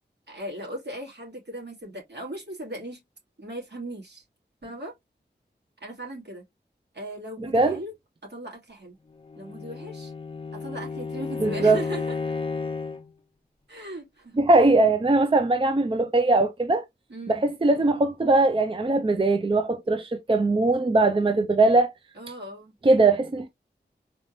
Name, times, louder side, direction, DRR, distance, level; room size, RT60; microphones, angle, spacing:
voice 1, 0.3-3.0 3.4-4.2 4.6-4.9 5.8-6.4 6.9-7.9 8.2-9.0 9.4-10.1 10.5-12.2 13.7-14.4 17.1-17.4 22.1-22.7, right 1 dB, 70° right, 2.3 m, -38 dB
voice 2, 7.4-7.8 11.4-11.8 14.4-16.8 17.3-21.9 22.8-23.5, right 2 dB, 30° right, 0.5 m, -21 dB
Bowed string instrument, 9.2-13.1, left 4 dB, 30° left, 0.8 m, -32 dB
4.1 x 3.2 x 2.6 m
wide cardioid pair, 65°, 18 cm